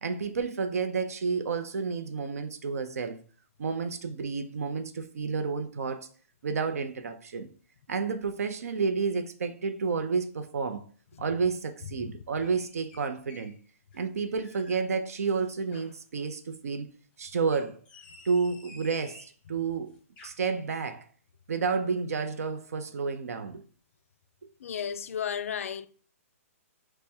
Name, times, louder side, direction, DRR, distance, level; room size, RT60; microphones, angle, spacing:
voice 1, 0.0-3.2 3.6-6.1 6.4-7.5 7.9-10.8 11.2-13.6 13.9-16.9 17.2-17.8 18.3-19.9 20.2-21.0 21.5-23.6, right 5 dB, 85° right, 0.6 m, -30 dB
sound 1, 12.4-13.6 13.9-14.9 15.3-16.0 17.4-19.4 19.9-20.3, left 2 dB, 15° left, 0.7 m, -53 dB
voice 2, 24.6-25.9, left 8 dB, 70° left, 0.4 m, -34 dB
3.4 x 2.2 x 4.3 m
hypercardioid pair, 165°, 8 cm